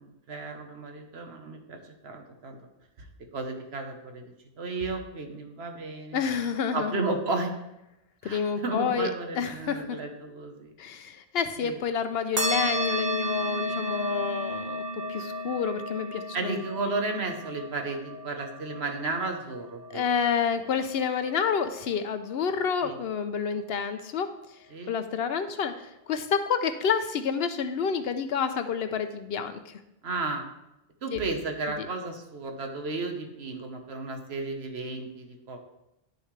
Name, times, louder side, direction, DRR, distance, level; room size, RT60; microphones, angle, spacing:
voice 1, 0.0-2.6 3.0-3.1 3.3-6.2 6.7-7.5 8.2-10.7 11.6-11.8 16.3-20.1 22.8-23.0 24.7-24.9 30.0-30.4 31.0-35.6, right 3 dB, 65° right, 4 dB, 1.3 m, -33 dB
voice 2, 6.1-7.0 8.2-9.1 9.3-10.0 10.8-16.6 19.9-24.3 24.9-29.7 31.1-31.2, left 6 dB, 65° left, 10 dB, 0.8 m, -29 dB
sound 1, 12.4-21.3, equal, 35° right, 1.2 m, -33 dB
10.5 x 6.6 x 3.2 m, 0.89 s
omnidirectional pair, 1.2 m